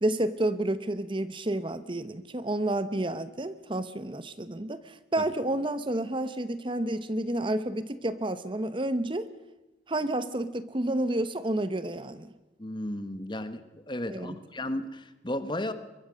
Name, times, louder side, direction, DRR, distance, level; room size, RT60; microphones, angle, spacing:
voice 1, 0.0-9.3 9.9-12.3 14.1-14.4, right 1 dB, 30° right, 13 dB, 0.9 m, -30 dB
voice 2, 12.6-13.6 13.9-15.7, left 1 dB, 25° left, 11 dB, 1.5 m, -34 dB
23.0 x 23.0 x 6.4 m, 1.1 s
head